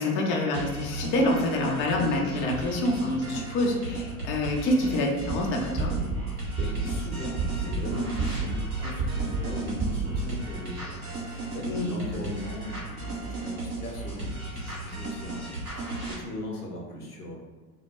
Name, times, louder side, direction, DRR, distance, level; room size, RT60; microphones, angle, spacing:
voice 1, 0.0-5.9 11.7-11.9, left 1 dB, 30° left, 0 dB, 0.4 m, -26 dB
sound 1, 0.5-16.1, right 2 dB, 90° right, 1.0 m, -35 dB
sound 2, 5.2-5.4 5.8-6.2 6.6-7.0 7.4-7.8 8.2-8.6 9.0-9.4 9.8-10.2, right 4 dB, 35° right, 0.6 m, -29 dB
voice 2, 6.5-17.3, left 1 dB, 90° left, -1 dB, 0.6 m, -38 dB
2.1 x 2.1 x 2.9 m, 1.3 s
figure-of-eight pair, 75°, 44 cm